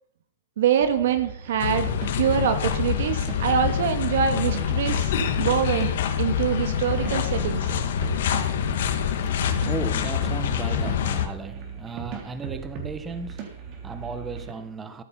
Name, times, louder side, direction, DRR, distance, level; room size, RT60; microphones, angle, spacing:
voice 1, 0.6-5.1 5.4-7.6, right 8 dB, 70° right, 2.0 m, -24 dB
sound 1, 0.8-14.5, right 6 dB, 40° right, 3.5 m, -38 dB
sound 2, 1.6-11.3, left 9 dB, 65° left, 2.0 m, -26 dB
voice 2, 8.0-15.0, right 4 dB, 15° right, 1.1 m, -37 dB
14.0 x 11.0 x 5.6 m
supercardioid pair, 155°, 0 cm